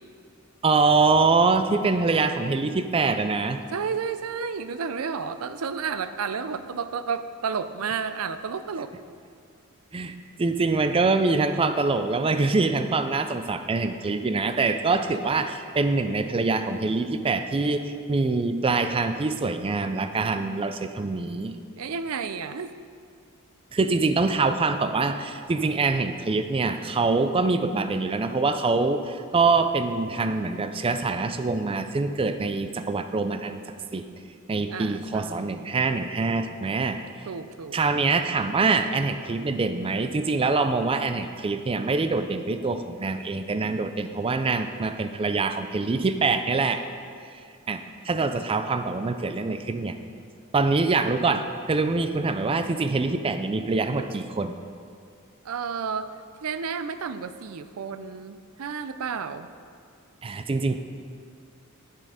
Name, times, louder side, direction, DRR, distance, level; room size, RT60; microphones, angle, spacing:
voice 1, 0.6-3.6 9.9-21.6 23.7-33.6 33.9-34.0 34.5-37.0 37.7-46.8 47.7-50.0 50.5-54.5 60.2-60.8, right 3 dB, 25° right, 9 dB, 0.4 m, -24 dB
voice 2, 3.7-8.9 21.8-22.7 34.7-35.7 37.3-37.8 55.4-59.5, right 6 dB, 85° right, 12 dB, 0.5 m, -32 dB
10.0 x 7.5 x 4.9 m, 2.2 s
head